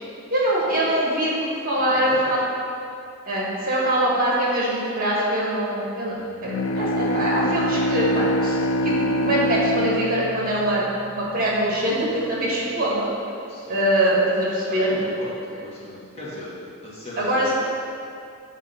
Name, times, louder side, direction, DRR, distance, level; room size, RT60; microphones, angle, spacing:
voice 1, 0.3-2.4 3.3-6.2 6.4-8.6 8.8-10.8 11.1-13.1 13.7-14.9 17.2-17.5, right 1 dB, 40° right, -6 dB, 1.9 m, -23 dB
voice 2, 1.8-2.1 6.2-6.3 13.5-13.8 14.7-16.5 16.8-17.5, left 1 dB, 30° left, -8 dB, 1.6 m, -38 dB
Bowed string instrument, 6.4-11.5, equal, 90° left, 0.4 m, -25 dB
7.4 x 4.7 x 5.4 m, 2.4 s
head